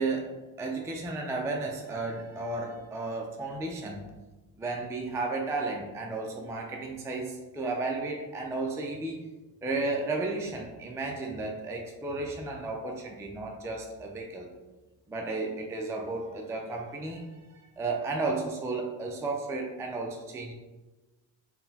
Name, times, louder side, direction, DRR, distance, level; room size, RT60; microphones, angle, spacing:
voice 1, 0.0-4.1 4.6-9.2 9.6-14.5 15.1-20.5, right 3 dB, 5° right, 0 dB, 0.4 m, -33 dB
3.9 x 2.2 x 4.0 m, 1.2 s
cardioid pair, 95°, 45 cm